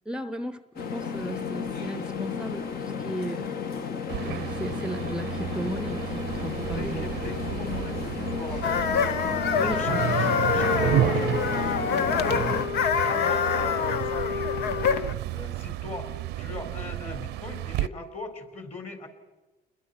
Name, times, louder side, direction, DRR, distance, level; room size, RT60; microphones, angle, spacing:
voice 1, 0.1-0.6 0.9-3.6 4.2-7.1 9.6-10.1, right 1 dB, 5° right, 12 dB, 0.7 m, -35 dB
sound 1, 0.8-12.7, left 6 dB, 60° left, 1.6 m, -33 dB
sound 2, 4.1-17.9, right 14 dB, 85° right, 0.7 m, -32 dB
voice 2, 6.7-9.0 9.6-10.3 10.5-14.9 15.3-19.1, left 3 dB, 40° left, 6 dB, 4.4 m, -40 dB
sound 3, 8.6-15.1, left 7 dB, 80° left, 1.1 m, -26 dB
29.5 x 21.5 x 5.8 m, 1.2 s
cardioid pair, 110°, 17 cm